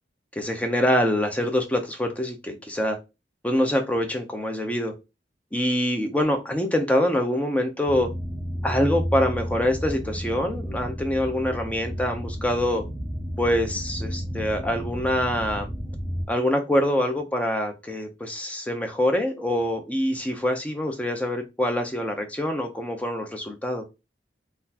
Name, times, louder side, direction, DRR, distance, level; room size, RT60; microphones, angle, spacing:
voice 1, 0.4-3.0 3.4-4.9 5.5-8.1 8.6-12.8 13.4-15.7 16.3-23.8, left 1 dB, 10° left, 5 dB, 0.5 m, -25 dB
sound 1, 7.9-16.2, equal, 35° left, 1.1 m, -32 dB
3.9 x 2.5 x 2.7 m, 0.26 s
head